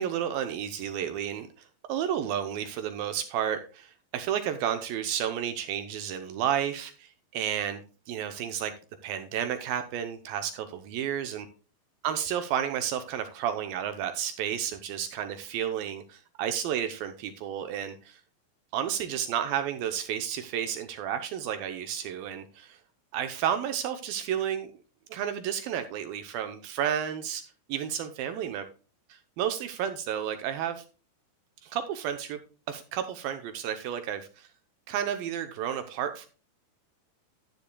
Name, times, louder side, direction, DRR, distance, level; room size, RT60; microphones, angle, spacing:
voice 1, 0.0-1.5 1.9-8.7 9.0-11.5 12.0-18.2 18.7-22.8 23.1-24.7 25.1-27.4 27.7-28.6 29.1-30.8 31.6-32.4 32.7-34.5 34.9-36.3, right 9 dB, 75° right, 8 dB, 2.2 m, -31 dB
12.0 x 10.0 x 2.2 m, 0.36 s
omnidirectional pair, 4.9 m